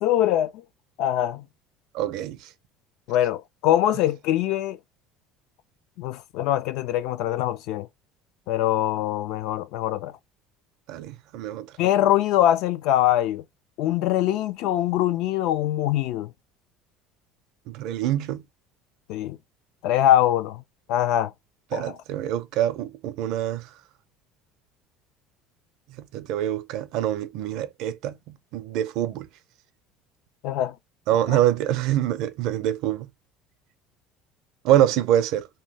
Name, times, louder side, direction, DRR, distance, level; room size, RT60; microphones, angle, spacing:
voice 1, 0.0-0.5 1.0-1.4 3.1-4.8 6.0-7.9 8.5-10.1 11.8-13.4 13.8-16.3 19.1-19.4 19.8-20.6 20.9-21.3 21.7-21.9 30.4-30.7 31.3-31.4, left 12 dB, 65° left, 0.4 m, -23 dB
voice 2, 1.9-2.4 10.9-11.7 17.7-18.4 21.7-23.7 26.1-29.3 31.1-33.1 34.6-35.5, right 12 dB, 65° right, 0.5 m, -25 dB
2.7 x 2.2 x 3.1 m
cardioid pair, 140°, 0 cm